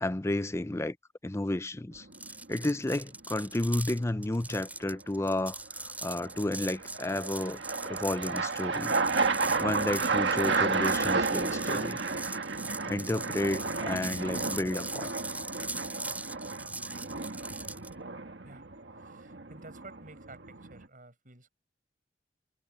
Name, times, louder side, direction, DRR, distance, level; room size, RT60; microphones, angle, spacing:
voice 1, 0.0-1.0 1.2-2.1 2.5-9.0 9.6-12.0 12.9-15.1, left 1 dB, 15° left, 0.5 m, -32 dB
sound 1, 2.0-2.4 6.3-20.9, right 4 dB, 90° right, 1.7 m, -32 dB
sound 2, 2.1-17.9, right 2 dB, 10° right, 5.4 m, -41 dB
voice 2, 19.0-21.5, right 2 dB, 50° right, 7.1 m, -52 dB
head